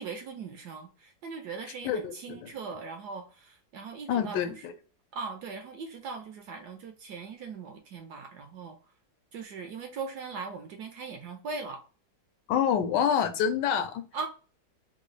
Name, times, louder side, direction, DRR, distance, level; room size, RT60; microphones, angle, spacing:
voice 1, 0.0-4.6 5.1-8.8 9.3-11.8 14.1-14.3, right 4 dB, 70° right, 1.0 m, -39 dB
voice 2, 1.8-2.5 4.1-4.7 12.5-14.0, left 8 dB, 75° left, 1.2 m, -27 dB
3.6 x 2.3 x 3.2 m
omnidirectional pair, 2.0 m